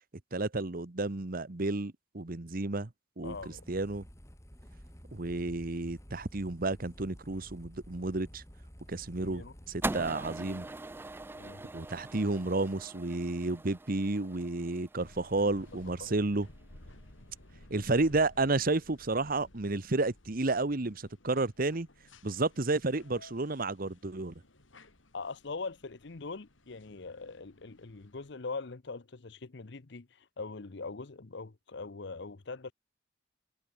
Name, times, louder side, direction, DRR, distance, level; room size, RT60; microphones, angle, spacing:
voice 1, 0.3-2.9 3.2-3.3 3.7-4.0 5.1-8.4 8.9-10.7 11.7-16.5 17.7-21.9 22.2-24.3, right 2 dB, 50° right, 1.1 m, -31 dB
voice 2, 3.2-3.6 9.2-9.5 11.3-11.6 15.4-15.5 16.0-16.2 25.1-32.7, left 4 dB, 65° left, 0.9 m, -42 dB
sound 1, 3.2-9.9, equal, 15° left, 5.4 m, -52 dB
sound 2, 9.8-16.2, right 2 dB, 10° right, 0.3 m, -41 dB
sound 3, 15.0-28.3, left 1 dB, 90° left, 3.6 m, -57 dB
head